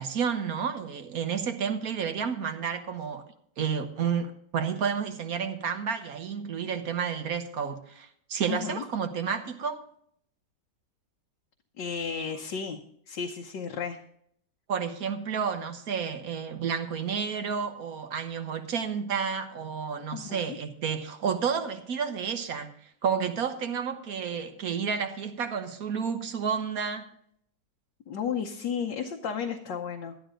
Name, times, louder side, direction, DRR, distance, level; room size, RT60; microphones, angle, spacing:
voice 1, 0.0-3.3 3.6-9.8 14.7-22.7 23.0-27.1, right 6 dB, 55° right, 1.4 m, -31 dB
voice 2, 8.5-8.8 11.8-12.8 13.1-14.0 20.1-20.6 28.1-30.2, left 7 dB, 80° left, 1.6 m, -33 dB
12.5 x 11.5 x 3.8 m
omnidirectional pair, 1.9 m